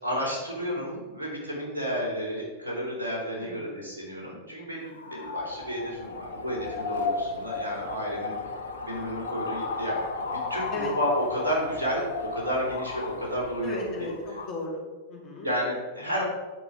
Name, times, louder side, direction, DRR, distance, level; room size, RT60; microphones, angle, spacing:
voice 1, 0.0-8.3 8.9-10.0 10.3-14.1 15.4-16.2, equal, 75° right, -3 dB, 3.2 m, -31 dB
voice 2, 3.4-3.8 10.7-10.9 13.6-14.8 15.1-15.5, left 2 dB, 40° left, -2 dB, 2.7 m, -35 dB
sound 1, 4.8-14.6, left 4 dB, 70° left, 0.9 m, -34 dB
10.5 x 4.9 x 5.2 m, 1.2 s
figure-of-eight pair, 90°, 0 cm